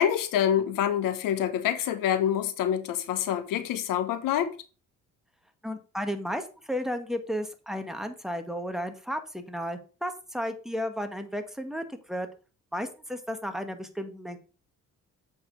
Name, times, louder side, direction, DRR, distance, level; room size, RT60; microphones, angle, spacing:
voice 1, 0.0-4.5, left 10 dB, 85° left, 1.3 m, -26 dB
voice 2, 5.6-12.3 12.7-14.4, equal, ahead, 1.6 m, -33 dB
7.8 x 5.3 x 5.3 m
cardioid pair, 80°, 32 cm